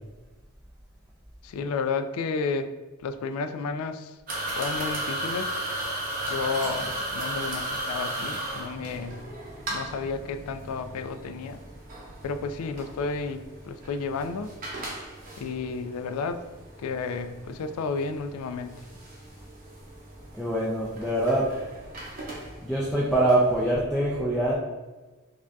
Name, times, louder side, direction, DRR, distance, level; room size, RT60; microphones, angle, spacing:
voice 1, 1.4-2.7 3.0-4.2 4.6-5.6 6.3-9.2 9.7-11.6 12.2-14.5 15.4-16.4 16.8-18.8, left 4 dB, 85° left, 10 dB, 0.3 m, -32 dB
sound 1, 4.3-23.7, right 1 dB, 40° right, 0.7 m, -36 dB
voice 2, 20.3-21.5 22.6-24.5, right 1 dB, ahead, -6 dB, 0.4 m, -24 dB
4.8 x 2.6 x 2.3 m, 1.2 s
head